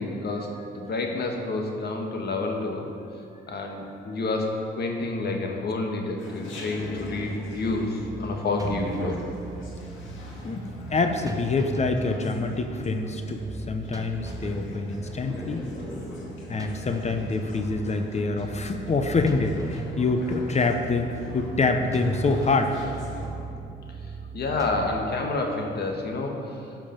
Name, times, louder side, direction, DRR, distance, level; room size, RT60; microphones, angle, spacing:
voice 1, 0.0-2.9 3.5-9.2 24.3-26.6, left 2 dB, 55° left, 2 dB, 1.5 m, -29 dB
Chatter, 6.2-23.3, left 1 dB, 75° left, 2.1 m, -42 dB
sound 1, 6.8-24.9, right 2 dB, 15° right, 0.9 m, -38 dB
voice 2, 10.9-15.6 16.5-22.8, left 3 dB, 35° left, 6 dB, 0.7 m, -26 dB
12.5 x 5.3 x 5.2 m, 2.6 s
cardioid pair, 90°, 20 cm